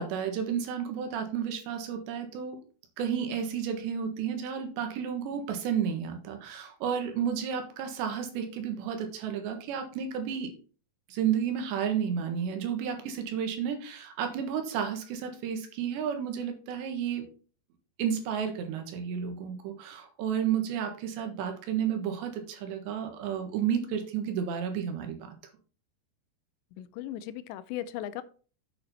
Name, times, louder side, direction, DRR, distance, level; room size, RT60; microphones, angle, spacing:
voice 1, 0.0-2.6 3.0-10.5 11.1-17.3 18.0-25.4, right 8 dB, 85° right, 5 dB, 3.7 m, -32 dB
voice 2, 26.8-28.2, left 12 dB, 90° left, 15 dB, 2.9 m, -37 dB
8.7 x 6.7 x 4.2 m, 0.39 s
omnidirectional pair, 5.0 m